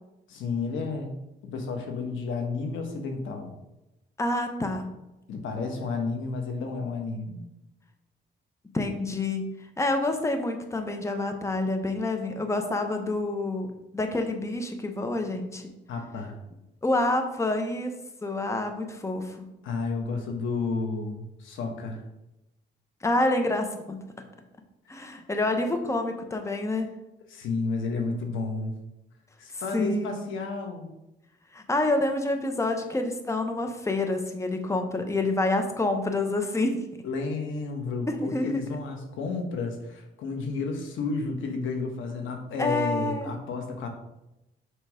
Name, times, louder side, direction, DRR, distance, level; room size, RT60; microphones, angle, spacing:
voice 1, 0.3-1.1 1.4-3.5 5.3-7.5 15.9-16.4 19.6-22.0 24.9-25.1 27.3-28.7 29.4-30.9 37.0-43.9, left 4 dB, 80° left, 3 dB, 1.2 m, -31 dB
voice 2, 4.2-4.9 8.7-15.7 16.8-17.9 18.2-19.5 23.0-24.0 24.9-26.9 29.5-30.2 31.5-36.8 38.1-38.6 42.6-43.3, left 2 dB, 15° left, 5 dB, 0.8 m, -28 dB
6.7 x 3.0 x 5.0 m, 0.92 s
cardioid pair, 90°, 20 cm